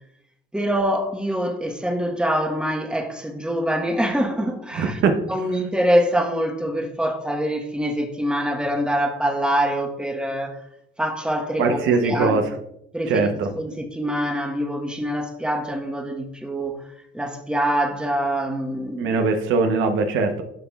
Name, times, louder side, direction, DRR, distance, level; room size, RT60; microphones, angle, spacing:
voice 1, 0.5-5.0 5.3-10.6 11.0-12.4 12.9-16.8 17.1-19.1, equal, 5° right, 1.1 m, -24 dB
voice 2, 4.7-5.2 11.6-12.4 13.1-13.5 19.0-20.4, right 4 dB, 85° right, 0.8 m, -21 dB
10.5 x 5.6 x 2.3 m
cardioid pair, 90°, 20 cm